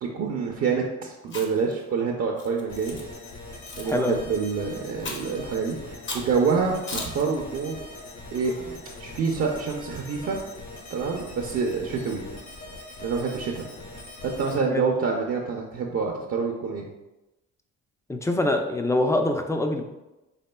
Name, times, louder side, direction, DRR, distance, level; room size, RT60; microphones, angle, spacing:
voice 1, 0.0-3.0 3.8-7.8 8.3-8.5 9.0-10.4 10.9-12.2 13.0-13.7 14.2-16.9, right 5 dB, 50° right, 1 dB, 0.6 m, -27 dB
Chewing mastication, 1.2-1.7 2.4-3.0 3.7-3.9 5.0-5.4 6.1-6.3 6.9-7.2, left 2 dB, 40° left, 0.8 m, -35 dB
sound 1, 2.7-14.6, left 2 dB, 65° left, 1.2 m, -42 dB
voice 2, 3.8-4.2 14.7-14.9 18.1-19.8, left 2 dB, 10° left, 5 dB, 0.4 m, -24 dB
4.2 x 3.5 x 2.2 m, 1.0 s
cardioid pair, 90°, 30 cm